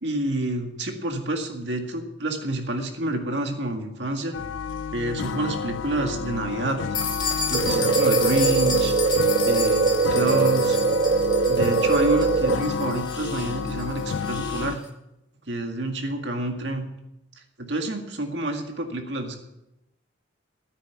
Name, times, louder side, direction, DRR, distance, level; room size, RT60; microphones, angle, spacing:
voice 1, 0.0-4.4 4.9-6.8 7.5-8.9 9.4-10.8 11.5-14.8 15.5-16.9 17.6-19.4, right 2 dB, 70° right, 4 dB, 2.0 m, -28 dB
sound 1, 4.3-14.8, left 6 dB, 85° left, 0.4 m, -30 dB
sound 2, 6.9-14.7, left 4 dB, 25° left, 2.1 m, -32 dB
sound 3, 7.5-12.6, right 4 dB, 45° right, 0.5 m, -21 dB
12.5 x 9.8 x 6.8 m, 0.88 s
head